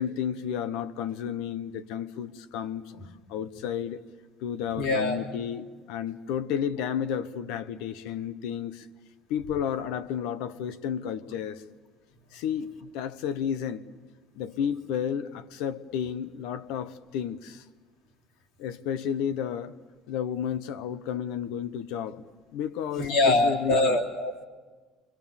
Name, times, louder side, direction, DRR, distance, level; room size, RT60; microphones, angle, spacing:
voice 1, 0.0-2.9 3.3-4.0 4.4-8.9 9.3-11.6 12.3-13.8 14.4-17.6 18.6-19.7 20.1-22.2 22.5-24.0, left 8 dB, 80° left, 1.0 m, -32 dB
voice 2, 4.7-5.2 23.0-24.5, left 2 dB, 60° left, 3.3 m, -24 dB
30.0 x 23.5 x 7.2 m
cardioid pair, 170°, 0 cm